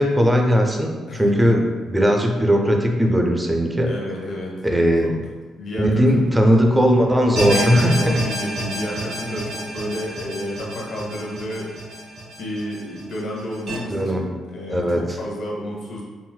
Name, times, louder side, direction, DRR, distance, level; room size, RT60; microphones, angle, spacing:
voice 1, 0.0-3.9 4.6-5.2 5.8-8.2 13.9-14.2 14.7-15.0, equal, 10° right, 2 dB, 0.4 m, -18 dB
voice 2, 1.1-1.4 3.9-5.1 5.5-6.4 6.7-6.8 7.8-12.1 12.4-16.0, left 1 dB, 60° left, -2 dB, 0.8 m, -31 dB
sound 1, 7.4-13.7, right 1 dB, 75° right, 1.3 m, -29 dB
3.9 x 2.0 x 2.2 m, 1.4 s
cardioid pair, 90°, 0 cm